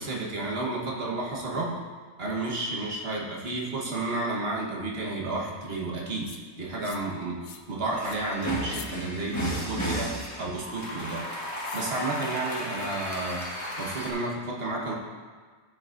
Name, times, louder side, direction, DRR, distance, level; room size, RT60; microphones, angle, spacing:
voice 1, 0.0-1.7 2.2-6.3 6.6-11.2 11.7-13.4 13.8-14.9, right 2 dB, 40° right, -3 dB, 1.4 m, -31 dB
sound 1, 6.2-6.4 6.8-7.1 7.4-7.7 8.0-8.2 8.6-8.9 9.4-9.7 10.1-10.4 11.6-11.9, left 9 dB, 75° left, 1.1 m, -45 dB
sound 2, 7.9-14.1, equal, 10° left, 1.3 m, -33 dB
12.5 x 6.4 x 2.6 m, 1.5 s
omnidirectional pair, 1.7 m